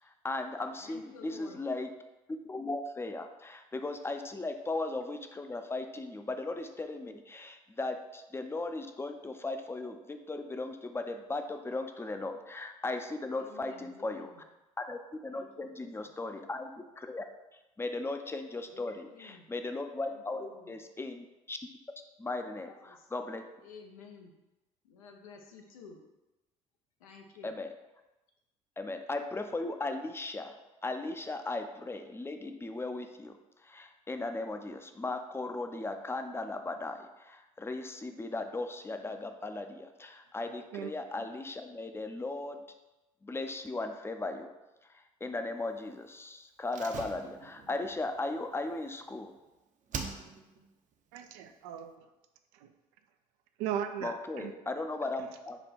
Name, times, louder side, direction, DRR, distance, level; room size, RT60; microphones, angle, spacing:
voice 1, 0.0-1.9 2.4-14.3 14.8-17.2 17.8-21.6 22.2-23.4 27.4-27.7 28.8-42.6 43.2-44.5 44.8-49.3 54.0-55.6, left 2 dB, 15° left, 6 dB, 0.5 m, -37 dB
voice 2, 0.8-1.6 13.3-14.4 15.3-16.1 18.7-19.5 20.0-20.7 22.4-23.1 23.6-24.3 24.8-26.0 27.0-27.6, left 5 dB, 90° left, 2 dB, 0.6 m, -52 dB
Slam, 46.7-49.4 49.9-50.7 50.9-51.0, right 5 dB, 45° right, 0.6 m, -43 dB
voice 3, 51.1-52.1 52.5-52.7 53.6-54.5, right 9 dB, 80° right, 7 dB, 0.4 m, -37 dB
5.5 x 2.2 x 4.1 m, 1.0 s
hypercardioid pair, 60°, 18 cm